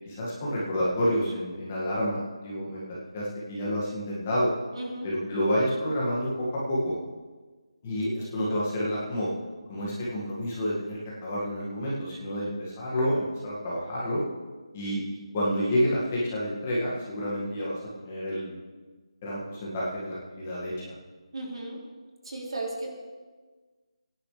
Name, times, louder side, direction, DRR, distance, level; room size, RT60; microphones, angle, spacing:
voice 1, 0.1-4.5 5.0-7.0 7.8-9.3 9.7-14.2 14.7-18.6 19.2-20.9, equal, 15° left, -7 dB, 2.0 m, -29 dB
voice 2, 4.7-5.1 21.3-21.8 22.2-22.9, right 2 dB, 60° right, -1 dB, 3.4 m, -35 dB
20.5 x 10.5 x 3.4 m, 1.3 s
figure-of-eight pair, 175°, 3 cm